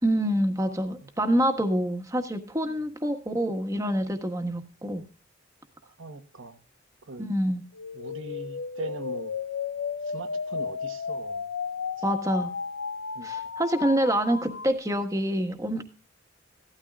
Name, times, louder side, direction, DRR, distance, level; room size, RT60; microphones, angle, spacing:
voice 1, 0.0-5.0 7.2-7.6 12.0-12.5 13.2-15.8, right 1 dB, 15° right, 1.5 m, -26 dB
voice 2, 6.0-6.6 7.1-7.3 7.9-9.3 10.1-11.4 13.1-13.3, right 2 dB, 85° right, 1.2 m, -40 dB
sound 1, 7.7-14.7, left 6 dB, 80° left, 0.6 m, -34 dB
16.5 x 13.0 x 2.4 m
head